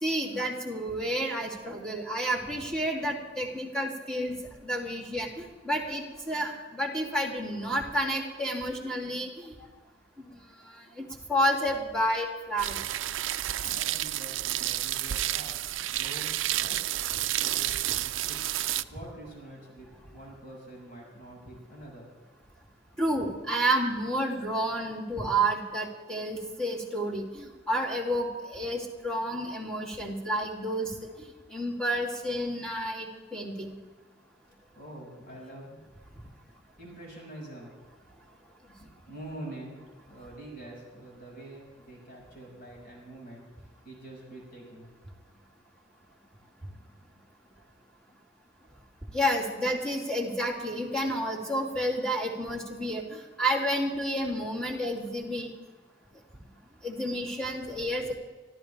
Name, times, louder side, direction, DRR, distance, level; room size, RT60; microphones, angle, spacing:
voice 1, 0.0-4.4 4.6-9.5 10.2-10.4 11.0-12.8 13.6-13.7 23.0-30.9 31.2-33.7 49.1-55.5 56.8-58.1, right 1 dB, 5° left, -3 dB, 2.8 m, -30 dB
sound 1, 12.6-18.8, right 14 dB, 80° right, 0.4 m, -30 dB
voice 2, 13.7-15.6 15.8-16.8 17.1-18.4 18.9-22.1 34.7-35.8 36.8-37.8 38.8-39.8 40.1-44.9, right 1 dB, 50° left, -3 dB, 5.9 m, -45 dB
25.5 x 14.0 x 3.5 m, 1.3 s
head